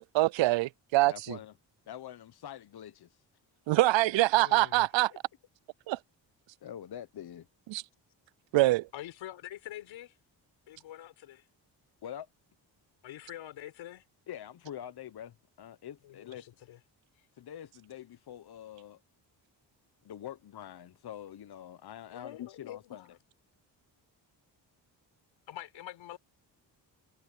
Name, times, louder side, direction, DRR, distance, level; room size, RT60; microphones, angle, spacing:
voice 1, 0.1-1.1 3.7-5.1 5.9-6.0 7.7-7.8 8.5-8.9, right 18 dB, 75° right, 0.6 m, -24 dB
voice 2, 1.0-1.5 1.9-3.2 3.7-3.8 5.1-5.2 6.6-7.5 12.0-12.3 14.3-16.5 17.4-19.0 20.0-23.2, left 10 dB, 55° left, 1.0 m, -45 dB
voice 3, 4.3-4.8 8.9-10.1 10.7-11.4 13.0-14.0 16.0-16.8 22.1-23.1 25.5-26.2, left 13 dB, 90° left, 4.3 m, -45 dB
supercardioid pair, 60°, 45 cm